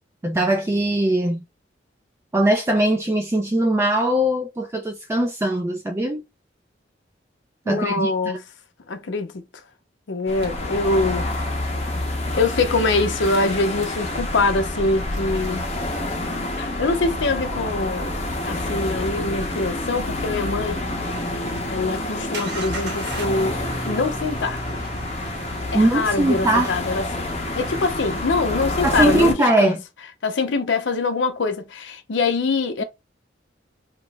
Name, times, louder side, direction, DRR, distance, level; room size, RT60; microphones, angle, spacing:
voice 1, 0.2-1.4 2.3-6.2 7.7-8.1 25.7-26.7 28.8-29.8, right 1 dB, 15° right, 0.3 m, -20 dB
voice 2, 7.7-8.4 8.9-9.4 10.1-11.3 12.3-15.7 16.6-18.2 18.5-20.9 21.7-23.6 23.8-24.6 25.7-27.0 27.6-29.3 29.6-29.8 30.2-32.8, left 3 dB, 75° left, 0.6 m, -24 dB
sound 1, 10.3-29.3, left 2 dB, 35° left, 0.8 m, -28 dB
sound 2, 10.4-12.1 13.1-21.3 22.3-28.2, right 1 dB, 65° right, 0.9 m, -37 dB
3.0 x 2.0 x 3.3 m
head